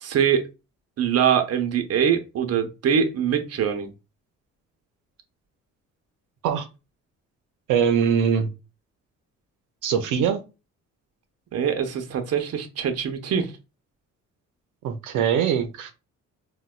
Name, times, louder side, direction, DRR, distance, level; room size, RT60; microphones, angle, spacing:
voice 1, 0.0-0.5 1.0-3.9 11.5-13.5, right 8 dB, 55° right, 0.7 m, -23 dB
voice 2, 7.7-8.5 9.8-10.4 14.8-15.9, right 7 dB, 90° right, 0.6 m, -22 dB
4.0 x 2.2 x 2.3 m
cardioid pair, 90°, 30 cm